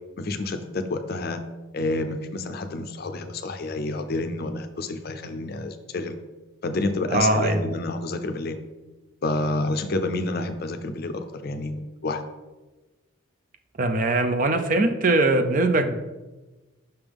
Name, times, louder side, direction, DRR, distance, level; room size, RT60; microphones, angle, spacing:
voice 1, 0.2-1.4 1.7-6.2 6.6-8.6 9.2-12.2, left 2 dB, 45° left, 7 dB, 0.5 m, -29 dB
voice 2, 7.1-7.6 13.8-15.9, right 2 dB, 40° right, 7 dB, 0.4 m, -21 dB
5.7 x 5.2 x 3.5 m, 1.2 s
head